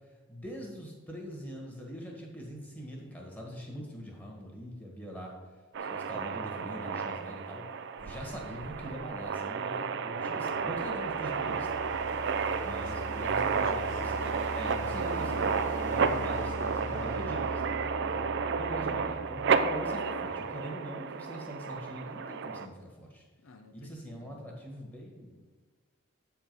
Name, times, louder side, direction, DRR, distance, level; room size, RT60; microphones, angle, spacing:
voice 1, 0.3-5.3 5.8-7.6 8.0-11.7 12.6-14.2 14.5-15.6 15.9-17.7 18.6-23.2 23.7-25.4, equal, 10° left, -1 dB, 1.5 m, -42 dB
sound 1, 5.7-22.7, right 5 dB, 60° right, 0.4 m, -32 dB
sound 2, 10.3-20.4, left 2 dB, 35° left, 0.8 m, -42 dB
voice 2, 12.1-13.9 18.1-18.4 23.4-24.4, left 2 dB, 75° left, 8 dB, 0.6 m, -52 dB
8.4 x 4.6 x 5.3 m, 1.3 s
head